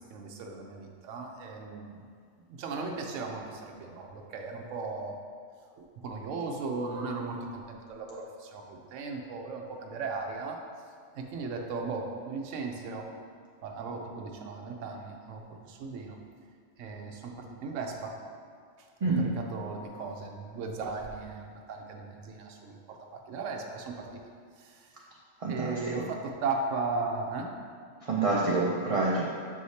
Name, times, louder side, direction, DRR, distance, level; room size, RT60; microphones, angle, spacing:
voice 1, 0.1-2.1 2.5-5.1 5.8-10.6 11.1-13.1 13.6-16.2 16.8-18.2 19.2-23.0 23.3-24.2 24.6-24.9 25.5-27.6, right 4 dB, 75° right, 2 dB, 1.0 m, -37 dB
voice 2, 19.0-19.3 25.4-26.1 28.0-29.3, right 3 dB, 55° right, -4 dB, 0.3 m, -27 dB
7.0 x 4.8 x 2.8 m, 2.2 s
omnidirectional pair, 1.3 m